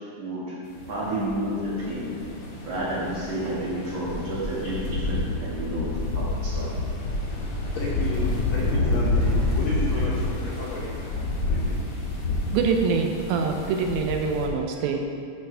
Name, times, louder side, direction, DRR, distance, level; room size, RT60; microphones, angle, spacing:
voice 1, 0.2-0.6 0.9-2.1 2.6-5.8 6.1-6.8, right 1 dB, 50° right, -8 dB, 2.5 m, -30 dB
sound 1, 0.8-14.5, left 2 dB, 60° left, 1.5 m, -28 dB
voice 2, 7.7-11.2 11.5-11.8, left 2 dB, 80° left, -5 dB, 1.6 m, -33 dB
voice 3, 12.5-15.0, right 5 dB, 80° right, 3 dB, 2.3 m, -25 dB
11.0 x 6.1 x 3.3 m, 2.5 s
omnidirectional pair, 4.4 m